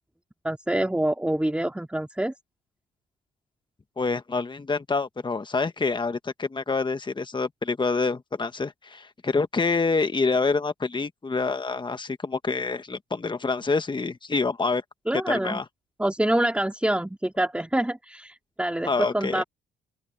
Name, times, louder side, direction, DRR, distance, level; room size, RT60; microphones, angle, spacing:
voice 1, 0.4-2.3 15.1-15.6 16.0-19.4, right 1 dB, 5° right, 2.8 m, -26 dB
voice 2, 4.0-14.8 15.3-15.6 18.8-19.4, left 4 dB, 25° left, 1.5 m, -27 dB
open air
cardioid pair, 90°, 20 cm